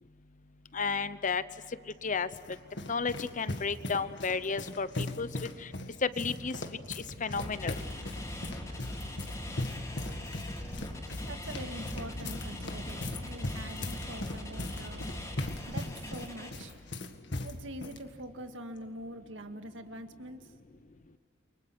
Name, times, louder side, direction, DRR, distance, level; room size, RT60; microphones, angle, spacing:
voice 1, 0.7-1.4 2.0-2.3 2.9-5.3 6.0-6.5 7.0-7.7, left 5 dB, 40° left, 15 dB, 0.8 m, -32 dB
sound 1, 1.9-18.0, left 2 dB, 65° left, 1.9 m, -39 dB
sound 2, 7.4-16.5, left 1 dB, 15° left, 4.5 m, -40 dB
voice 2, 11.3-15.1 15.7-16.7 17.4-20.5, right 1 dB, 75° right, 7 dB, 1.9 m, -44 dB
29.5 x 24.0 x 6.2 m, 2.1 s
head